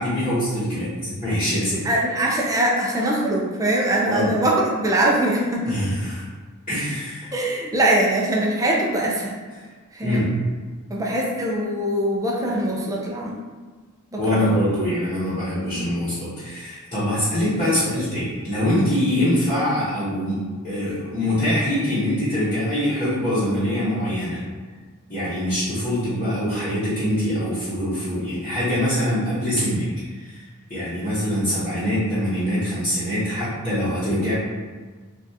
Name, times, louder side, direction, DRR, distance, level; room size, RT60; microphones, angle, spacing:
voice 1, 0.0-1.8 4.1-4.3 5.6-6.2 6.7-7.3 9.6-9.7 10.0-10.4 14.2-24.4 25.1-30.4 30.7-34.3, equal, 35° left, -13 dB, 1.0 m, -24 dB
voice 2, 1.7-5.8 7.3-9.4 9.9-10.2 10.9-13.4 14.1-14.4 15.6-15.8, right 1 dB, 15° right, -3 dB, 0.5 m, -22 dB
3.4 x 2.5 x 2.7 m, 1.4 s
head